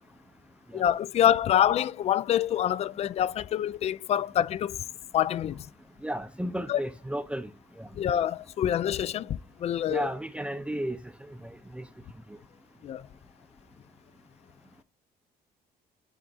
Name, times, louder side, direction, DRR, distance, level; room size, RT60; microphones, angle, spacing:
voice 1, 0.7-4.8 5.1-5.6 6.7-6.8 8.0-10.1 12.8-13.0, left 10 dB, 40° left, 0.3 m, -26 dB
voice 2, 6.0-7.5 7.8-7.9 9.9-11.0 11.3-11.4 11.7-11.9, right 1 dB, 5° right, 0.6 m, -33 dB
10.0 x 3.5 x 3.9 m
cardioid pair, 110°, 17 cm